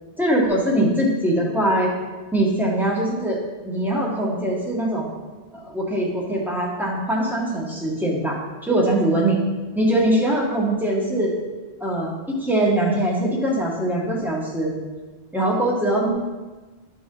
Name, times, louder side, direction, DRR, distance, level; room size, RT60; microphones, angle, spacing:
voice 1, 0.2-1.9 2.3-3.4 3.6-5.1 5.5-9.4 9.7-11.3 11.8-14.7 15.3-16.1, right 1 dB, ahead, -4 dB, 1.5 m, -22 dB
12.5 x 4.3 x 3.8 m, 1.2 s
omnidirectional pair, 1.1 m